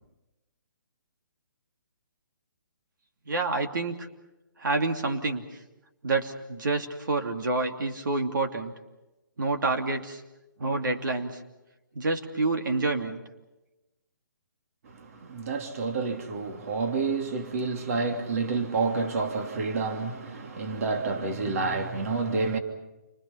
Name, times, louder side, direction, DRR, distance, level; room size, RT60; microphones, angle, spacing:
voice 1, 3.3-4.1 4.6-5.4 6.0-8.7 9.4-10.2 10.6-11.4 11.9-13.2, right 3 dB, 75° right, 2.8 m, -28 dB
voice 2, 14.9-22.6, right 4 dB, 45° right, 3.0 m, -29 dB
29.0 x 24.5 x 5.8 m
hypercardioid pair, 165°, 11 cm